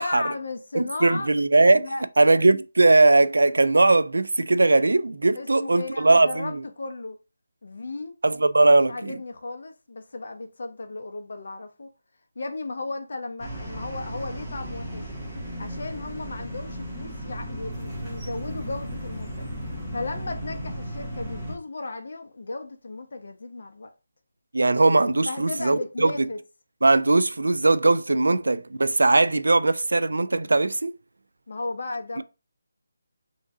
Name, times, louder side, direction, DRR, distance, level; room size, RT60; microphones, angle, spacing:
voice 1, 0.0-1.3 1.7-2.0 5.3-7.2 7.6-8.1 8.9-11.9 12.4-15.1 15.6-19.5 19.9-23.9 25.3-26.4 31.5-32.2, left 3 dB, 50° left, 0.7 m, -35 dB
voice 2, 0.7-1.8 2.2-6.6 8.2-9.2 24.5-26.1 26.8-30.9, right 2 dB, 90° right, 0.3 m, -19 dB
sound 1, 13.4-21.6, equal, ahead, 0.9 m, -35 dB
3.6 x 2.7 x 3.6 m
figure-of-eight pair, 175°, 0 cm